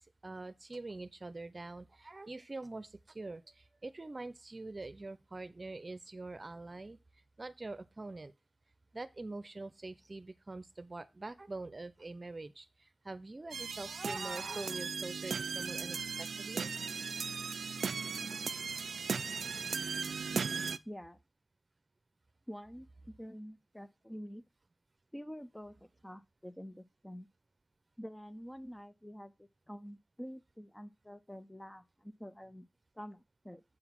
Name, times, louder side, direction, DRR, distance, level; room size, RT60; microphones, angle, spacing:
voice 1, 0.2-7.0 7.4-8.3 8.9-16.7 19.1-19.8, right 2 dB, 45° right, 0.7 m, -44 dB
sound 1, 13.5-20.8, right 5 dB, 90° right, 0.3 m, -37 dB
voice 2, 20.3-21.2 22.5-22.9 23.2-24.4 25.1-27.3 28.0-32.7 33.0-33.6, equal, 10° left, 0.9 m, -48 dB
7.9 x 3.9 x 6.1 m
cardioid pair, 40°, 0 cm